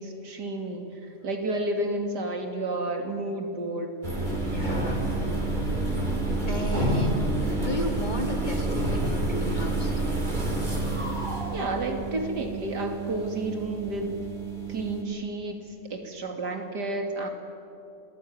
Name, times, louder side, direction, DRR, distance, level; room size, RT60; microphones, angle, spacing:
voice 1, 0.0-3.9 11.5-14.2 14.7-15.6 15.9-17.3, right 2 dB, 80° right, 4 dB, 3.2 m, -31 dB
sound 1, 4.0-15.0, right 2 dB, 25° right, 3.9 m, -28 dB
voice 2, 4.5-5.0 6.5-10.0, left 1 dB, 25° left, 2 dB, 3.2 m, -34 dB
28.5 x 19.5 x 9.5 m, 2.8 s
omnidirectional pair, 1.7 m